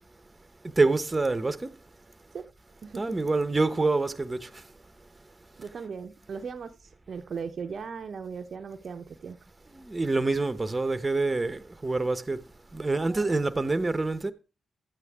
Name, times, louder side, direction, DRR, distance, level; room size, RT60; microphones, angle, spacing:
voice 1, 0.6-1.7 2.9-4.6 9.7-12.4 12.7-14.3, right 3 dB, 30° right, 1.0 m, -26 dB
voice 2, 2.8-3.2 5.6-9.4, right 6 dB, 60° right, 0.7 m, -38 dB
13.0 x 8.3 x 3.6 m
supercardioid pair, 45°, 0 cm